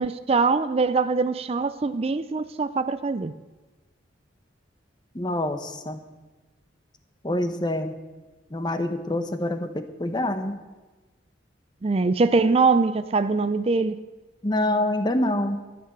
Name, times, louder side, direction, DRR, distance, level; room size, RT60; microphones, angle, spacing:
voice 1, 0.0-3.3 11.8-14.0, right 4 dB, 30° right, 12 dB, 0.4 m, -23 dB
voice 2, 5.1-6.0 7.2-7.9 8.5-10.6 14.4-15.6, left 1 dB, 25° left, 9 dB, 0.9 m, -26 dB
13.5 x 9.0 x 6.6 m, 1.2 s
head